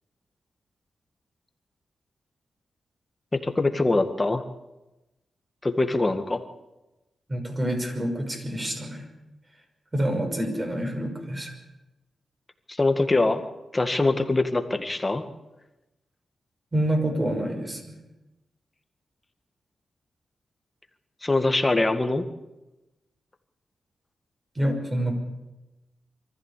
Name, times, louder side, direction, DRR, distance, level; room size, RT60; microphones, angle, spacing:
voice 1, 3.3-4.4 5.6-6.4 12.7-13.4 13.7-15.2 21.2-22.2, left 2 dB, 20° left, 7 dB, 1.9 m, -23 dB
voice 2, 7.3-9.0 9.9-11.5 16.7-18.0 24.5-25.1, right 1 dB, 25° right, 3 dB, 5.9 m, -27 dB
24.0 x 14.5 x 8.5 m, 1.0 s
cardioid pair, 95°, 0 cm